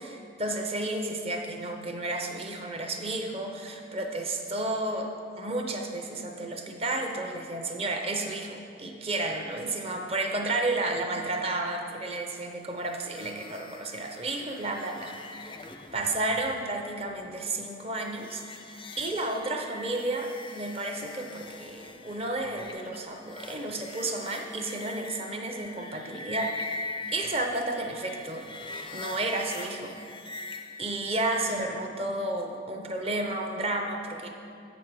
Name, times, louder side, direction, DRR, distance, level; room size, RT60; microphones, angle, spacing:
voice 1, 0.0-5.1 5.4-28.5 28.9-29.9 30.8-34.3, right 2 dB, 30° right, 3 dB, 0.6 m, -32 dB
sound 1, 12.8-31.6, left 3 dB, 25° left, 0.4 m, -43 dB
7.9 x 6.3 x 4.6 m, 2.4 s
head